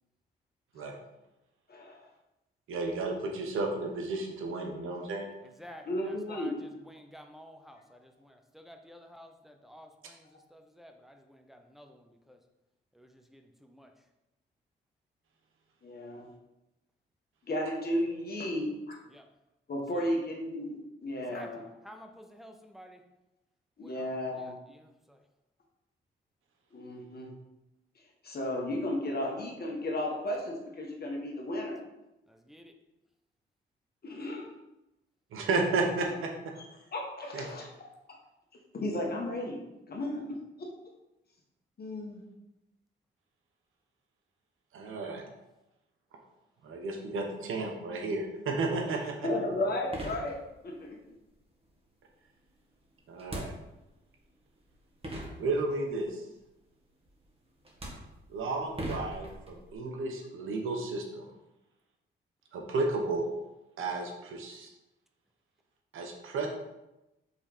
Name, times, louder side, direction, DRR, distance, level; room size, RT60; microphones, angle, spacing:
voice 1, 1.7-2.0 5.9-6.6 15.8-16.3 17.5-19.0 19.7-21.6 23.8-24.5 26.7-27.3 28.2-31.8 34.0-34.5 36.9-37.7 38.7-39.6 39.9-40.7 41.8-42.2 49.2-50.4 50.6-51.1, left 1 dB, 50° left, 0 dB, 1.6 m, -34 dB
voice 2, 2.7-5.3 35.3-36.5 37.3-37.4 44.7-45.2 46.6-49.2 53.1-53.5 55.4-56.2 58.3-61.3 62.5-63.3 63.8-64.7 65.9-66.5, right 3 dB, 80° right, 2 dB, 1.1 m, -32 dB
voice 3, 5.4-12.4 12.9-13.9 19.1-19.3 21.2-23.1 23.8-25.2 32.3-32.7 48.8-49.4, equal, ahead, 4 dB, 0.8 m, -52 dB
sound 1, 49.5-49.6 49.9-50.8 53.2-54.1 54.7-54.8 55.0-56.0 57.1-57.3 57.6-59.8, equal, 25° right, 1.7 m, -40 dB
5.4 x 3.4 x 5.0 m, 0.95 s
cardioid pair, 65°, 21 cm